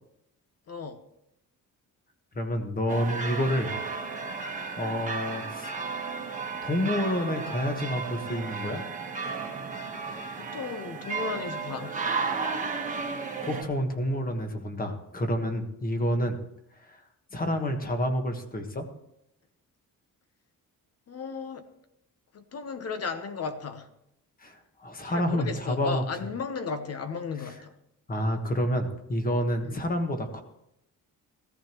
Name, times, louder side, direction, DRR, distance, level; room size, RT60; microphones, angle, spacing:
voice 1, 0.7-1.0 10.4-11.9 21.1-21.6 22.3-23.9 25.0-27.7 29.7-29.8, left 5 dB, 45° left, 9 dB, 0.9 m, -35 dB
voice 2, 2.3-3.7 4.8-5.7 6.6-8.8 13.4-16.4 17.3-18.9 24.4-26.0 28.1-30.4, equal, 25° left, 5 dB, 1.5 m, -28 dB
sound 1, 2.9-13.6, right 4 dB, 20° right, 1.3 m, -34 dB
16.0 x 14.5 x 3.1 m, 0.80 s
wide cardioid pair, 170°, 34 cm